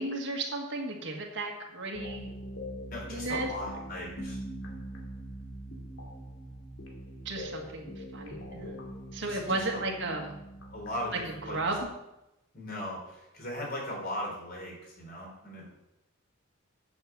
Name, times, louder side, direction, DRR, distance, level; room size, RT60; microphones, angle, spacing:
voice 1, 0.0-2.3 3.1-3.5 7.3-8.8 9.1-10.4 11.4-11.9, right 2 dB, 55° right, 1 dB, 1.7 m, -34 dB
sound 1, 1.9-11.9, equal, 65° left, 2.2 m, -43 dB
voice 2, 2.9-4.4 9.2-9.8 10.7-11.6 12.5-15.7, left 1 dB, 45° left, -2 dB, 3.8 m, -38 dB
8.2 x 6.9 x 7.0 m, 0.91 s
head